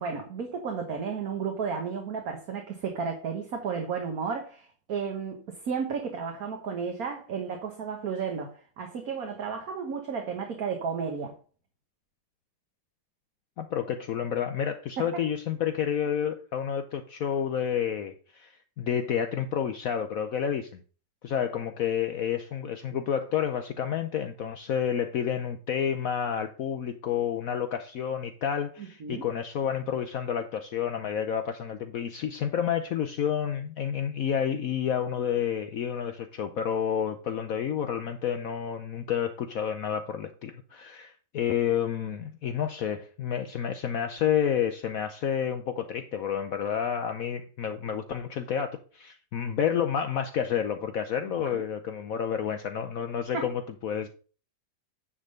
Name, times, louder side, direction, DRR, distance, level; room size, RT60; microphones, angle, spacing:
voice 1, 0.0-11.3 15.0-15.1 29.0-29.3 51.5-51.6 53.3-53.4, right 6 dB, 55° right, 1.6 m, -33 dB
voice 2, 13.6-20.8 21.2-54.1, left 8 dB, 65° left, 1.0 m, -30 dB
9.8 x 3.7 x 6.4 m
omnidirectional pair, 1.9 m